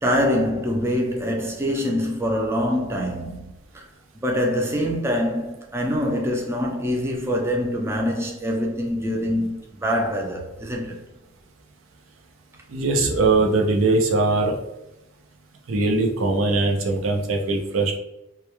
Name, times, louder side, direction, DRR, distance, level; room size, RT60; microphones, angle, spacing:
voice 1, 0.0-3.8 4.2-11.0, equal, 15° right, 0.3 m, -24 dB
voice 2, 12.7-14.6 15.7-18.0, right 3 dB, 85° right, 0.5 m, -21 dB
2.2 x 2.1 x 2.9 m
head